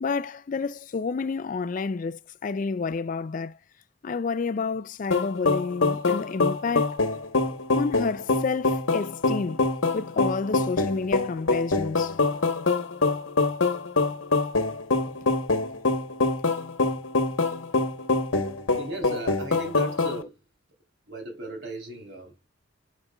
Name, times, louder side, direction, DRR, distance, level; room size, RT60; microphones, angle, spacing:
voice 1, 0.0-3.6 4.0-7.0 7.8-9.6 9.9-12.2, left 4 dB, 40° left, 0.3 m, -29 dB
sound 1, 5.1-20.2, left 3 dB, 65° left, 1.1 m, -25 dB
voice 2, 18.8-20.4 21.1-22.4, right 2 dB, 55° right, 3.4 m, -37 dB
11.0 x 5.0 x 2.3 m
head